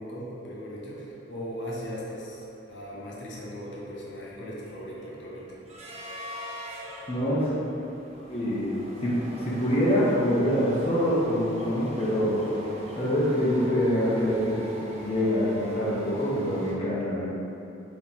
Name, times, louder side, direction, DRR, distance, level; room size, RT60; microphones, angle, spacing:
voice 1, 0.0-5.6, equal, 65° left, -6 dB, 0.8 m, -38 dB
sound 1, 1.3-1.4 1.7-1.9 2.3-16.7, equal, 35° right, 0.5 m, -42 dB
voice 2, 7.1-7.5 8.3-12.4 13.0-14.6 15.0-17.3, equal, 30° left, -8 dB, 0.6 m, -25 dB
3.7 x 2.9 x 4.2 m, 2.9 s
head